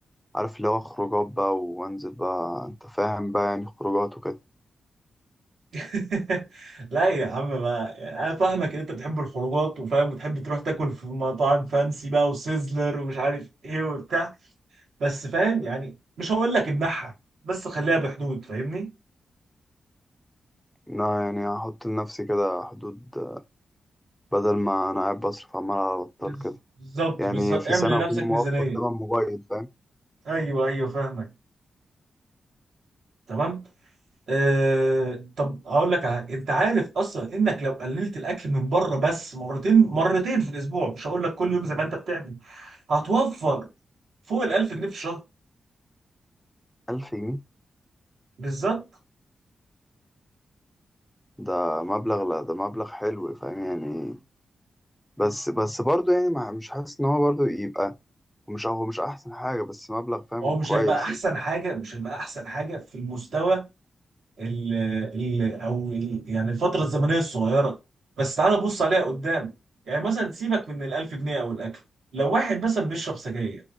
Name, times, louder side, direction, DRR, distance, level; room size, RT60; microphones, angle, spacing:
voice 1, 0.3-4.4 20.9-23.4 24.3-26.6 27.2-29.7 46.9-47.4 51.4-54.2 55.2-57.9 58.5-61.2, equal, 5° left, 0.3 m, -27 dB
voice 2, 5.7-14.3 15.0-15.9 16.2-17.1 17.4-18.9 26.2-26.3 26.9-28.8 30.3-31.3 33.3-33.6 34.3-43.7 44.3-45.2 48.4-48.8 60.4-63.7 64.4-67.7 68.2-69.5 69.9-71.8 72.1-73.6, right 3 dB, 90° right, 1.8 m, -26 dB
4.0 x 2.0 x 2.9 m
cardioid pair, 85°, 0 cm